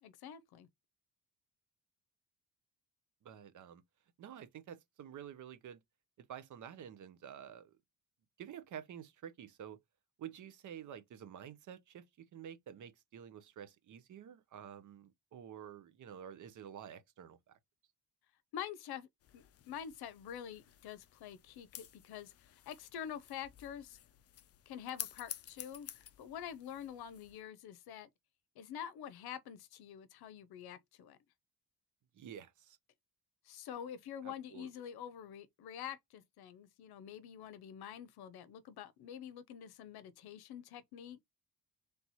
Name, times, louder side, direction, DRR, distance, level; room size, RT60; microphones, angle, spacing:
voice 1, 0.0-0.7 18.5-19.1 19.3-24.0 24.7-28.1 28.6-31.2 33.4-41.2, left 9 dB, 75° left, 0.7 m, -47 dB
voice 2, 3.2-3.8 4.2-5.8 6.2-7.8 8.4-9.8 10.2-17.6 32.1-32.8 34.2-34.7, right 9 dB, 50° right, 0.8 m, -50 dB
sound 1, 19.2-27.4, left 11 dB, 40° left, 0.4 m, -51 dB
3.4 x 3.0 x 4.1 m
cardioid pair, 140°, 38 cm